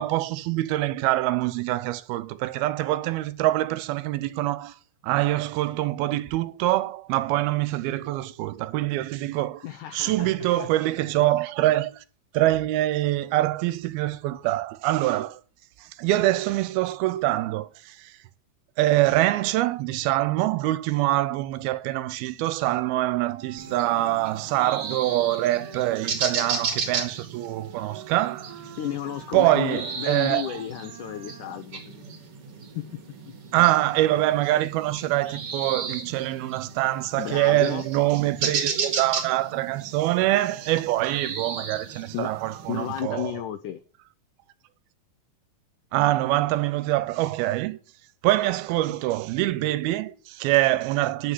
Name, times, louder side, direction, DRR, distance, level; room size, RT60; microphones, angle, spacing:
voice 1, 0.0-4.7 5.0-9.7 9.9-12.0 12.3-15.4 15.8-18.1 18.8-28.6 29.3-30.5 33.5-43.3 45.9-47.8 48.2-51.3, right 16 dB, 85° right, 2.5 m, -24 dB
voice 2, 9.6-10.3 10.6-10.7 11.2-11.3 28.8-32.0 32.8-32.9 37.2-37.9 42.1-42.3 42.7-43.8, left 11 dB, 90° left, 1.8 m, -32 dB
Wind instrument woodwind instrument, 22.7-31.7, right 8 dB, 65° right, 2.7 m, -46 dB
sound 1, 23.6-43.0, right 5 dB, 45° right, 2.4 m, -35 dB
10.0 x 5.9 x 8.0 m
omnidirectional pair, 4.4 m